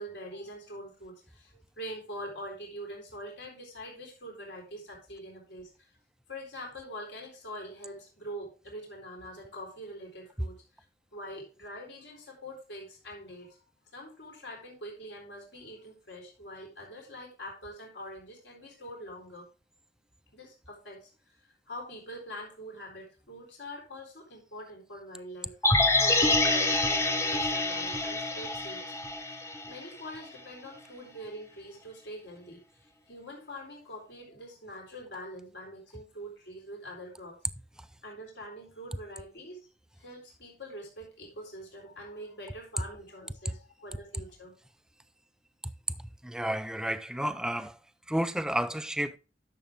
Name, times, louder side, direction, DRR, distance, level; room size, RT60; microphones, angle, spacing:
voice 1, 0.0-5.9 6.3-10.6 11.1-13.6 13.9-19.5 20.3-28.9 29.3-37.4 38.0-39.7 40.0-44.5, equal, 65° left, 3.9 m, -44 dB
sound 1, 25.6-29.8 30.1-30.2, left 2 dB, 15° left, 1.0 m, -26 dB
voice 2, 46.0-47.8 48.1-49.2, right 1 dB, 5° right, 0.4 m, -31 dB
11.0 x 6.9 x 3.5 m
head